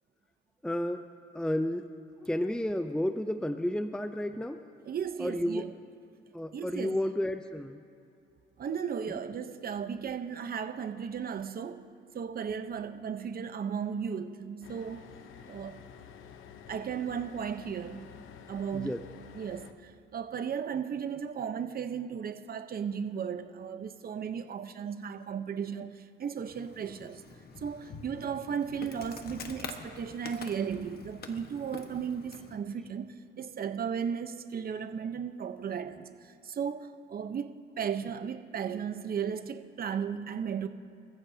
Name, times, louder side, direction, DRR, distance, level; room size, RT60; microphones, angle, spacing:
voice 1, 0.6-1.1 1.3-1.9 2.2-4.6 5.2-5.7 6.3-7.8 18.7-19.0, left 1 dB, 5° left, 9 dB, 0.5 m, -31 dB
voice 2, 4.8-5.7 6.5-7.0 8.6-11.9 12.1-15.1 15.5-15.8 16.7-18.1 18.5-19.0 19.3-27.2 27.6-40.7, right 7 dB, 50° right, 9 dB, 0.9 m, -35 dB
sound 1, 14.6-19.7, left 8 dB, 85° left, 0.9 m, -50 dB
Insect, 26.4-32.6, left 5 dB, 50° left, 1.4 m, -46 dB
28.0 x 14.5 x 2.8 m, 2.5 s
cardioid pair, 90°, 20 cm